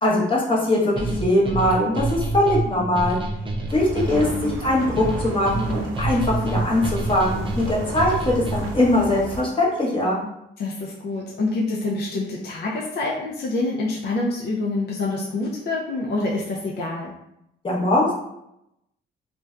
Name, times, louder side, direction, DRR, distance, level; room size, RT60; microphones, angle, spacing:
voice 1, 0.0-3.2 3.7-10.2 17.6-18.1, left 1 dB, 25° left, -5 dB, 0.9 m, -21 dB
sound 1, 1.0-8.9, right 2 dB, 25° right, 0.6 m, -28 dB
sound 2, 3.7-9.4, right 3 dB, 85° right, 0.4 m, -33 dB
voice 2, 10.6-17.1, left 2 dB, 55° left, -3 dB, 0.5 m, -26 dB
2.5 x 2.2 x 2.3 m, 0.81 s
cardioid pair, 90°, 20 cm